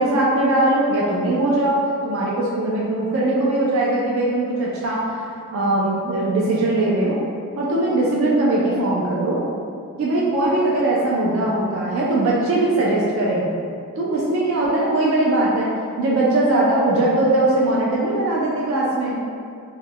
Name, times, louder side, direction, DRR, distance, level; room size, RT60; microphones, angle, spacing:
voice 1, 0.0-5.1 5.5-7.2 7.6-9.4 10.0-13.4 14.0-15.7 16.0-19.2, right 2 dB, 65° right, -5 dB, 0.4 m, -20 dB
2.3 x 2.1 x 3.4 m, 2.4 s
head